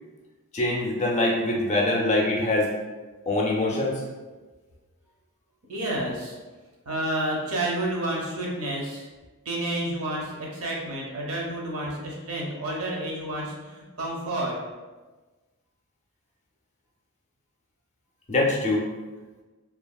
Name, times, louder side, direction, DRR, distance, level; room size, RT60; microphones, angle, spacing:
voice 1, 0.5-2.7 3.3-4.1 18.3-18.8, left 2 dB, 30° left, -2 dB, 0.4 m, -24 dB
voice 2, 5.7-6.4 6.9-9.1 9.4-14.6, right 1 dB, 75° right, -2 dB, 0.7 m, -30 dB
2.8 x 2.6 x 2.2 m, 1.3 s
head